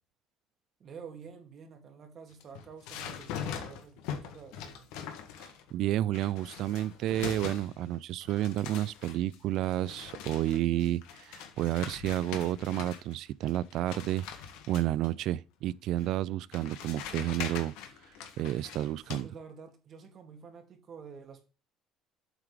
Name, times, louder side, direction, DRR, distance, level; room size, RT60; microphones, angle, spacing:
voice 1, 0.8-4.9 19.0-21.5, right 6 dB, 40° right, 1.6 m, -49 dB
sound 1, 2.3-5.7 6.1-8.0 8.2-13.2 13.5-15.1 16.0-16.1 16.5-19.2, left 8 dB, 90° left, 1.4 m, -42 dB
voice 2, 5.4-14.3 14.7-17.7 18.4-19.3, right 13 dB, 60° right, 0.3 m, -31 dB
8.0 x 3.8 x 4.8 m
cardioid pair, 145°, 0 cm